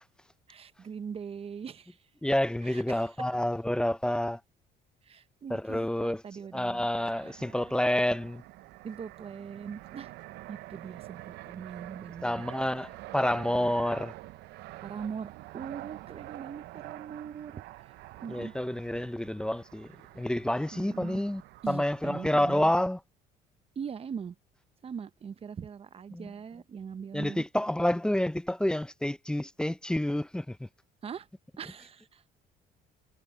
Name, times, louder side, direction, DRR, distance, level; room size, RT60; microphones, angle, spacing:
voice 1, 0.5-2.0 2.6-3.0 5.0-6.9 7.2-7.3 8.8-10.1 10.5-12.4 14.8-17.9 18.2-18.5 20.7-21.2 21.6-22.6 23.8-24.3 24.8-27.4 31.0-31.3 31.6-32.4, right 7 dB, 35° right, 0.9 m, -41 dB
voice 2, 2.2-4.4 5.5-6.2 6.5-8.4 12.2-14.1 18.3-19.9 20.1-21.4 21.7-23.0 26.1-26.3 27.1-30.7, left 1 dB, 5° left, 0.5 m, -29 dB
Fixed-wing aircraft airplane, 7.0-22.2, right 18 dB, 80° right, 0.6 m, -47 dB
cardioid pair, 110°, 17 cm